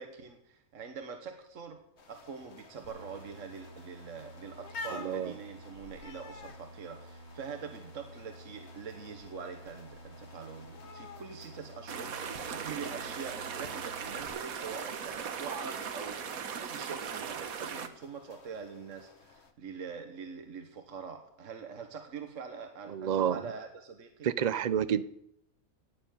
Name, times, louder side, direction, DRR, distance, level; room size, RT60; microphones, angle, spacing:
voice 1, 0.0-1.8 2.1-24.3, right 6 dB, 65° right, 1.6 m, -44 dB
sound 1, 2.0-19.5, left 4 dB, 55° left, 1.4 m, -52 dB
sound 2, 2.8-14.3, equal, 70° left, 3.7 m, -51 dB
voice 2, 4.9-5.3 22.9-23.4 24.2-25.0, right 9 dB, 50° right, 0.5 m, -29 dB
sound 3, 11.9-17.9, right 7 dB, 85° right, 1.5 m, -38 dB
18.0 x 7.0 x 9.1 m
omnidirectional pair, 1.4 m